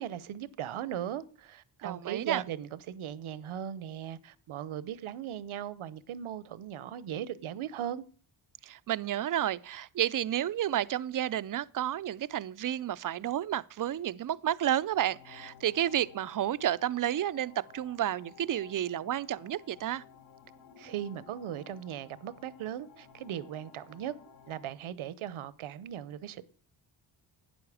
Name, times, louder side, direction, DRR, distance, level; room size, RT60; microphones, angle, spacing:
voice 1, 0.0-8.0 20.8-24.1 24.5-26.5, right 10 dB, 85° right, 0.9 m, -38 dB
voice 2, 1.8-2.4 8.6-20.0, right 11 dB, 45° right, 0.5 m, -31 dB
sound 1, 14.7-24.7, left 7 dB, 65° left, 1.4 m, -56 dB
12.0 x 9.3 x 4.9 m
wide cardioid pair, 115°, 48 cm